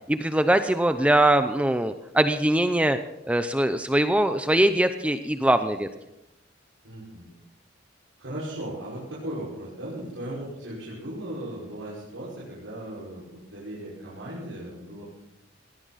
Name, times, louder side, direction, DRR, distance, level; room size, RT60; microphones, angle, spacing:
voice 1, 0.1-3.0 3.3-5.9, right 1 dB, 5° right, 9 dB, 0.6 m, -22 dB
voice 2, 6.8-7.3 8.2-15.1, right 1 dB, 85° right, -7 dB, 5.5 m, -37 dB
19.5 x 16.5 x 4.1 m, 0.93 s
head